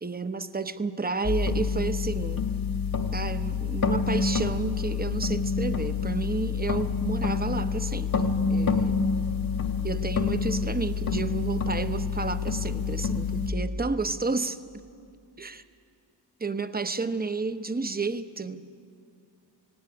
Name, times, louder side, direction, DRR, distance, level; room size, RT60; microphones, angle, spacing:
voice 1, 0.0-2.5 3.1-9.0 9.8-14.6 15.4-15.6 16.4-18.7, right 4 dB, 20° right, 11 dB, 0.9 m, -31 dB
sound 1, 1.2-13.5, left 5 dB, 50° left, 1.8 m, -27 dB
16.5 x 16.5 x 9.8 m, 2.4 s
cardioid pair, 50°, 44 cm